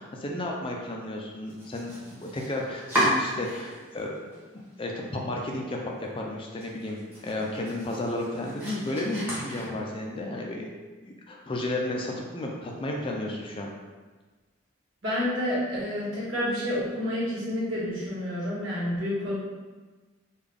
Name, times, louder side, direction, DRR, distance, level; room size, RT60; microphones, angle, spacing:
voice 1, 0.0-4.1 4.8-10.7 11.0-13.7, left 1 dB, 25° left, 0 dB, 0.4 m, -33 dB
Domestic sounds home sounds, 1.4-4.0 4.3-5.1 5.4-5.5 5.9-6.0 6.4-10.1, equal, 10° right, 1.0 m, -33 dB
voice 2, 15.0-19.3, left 1 dB, 75° right, -8 dB, 1.5 m, -29 dB
3.7 x 2.3 x 3.4 m, 1.3 s
head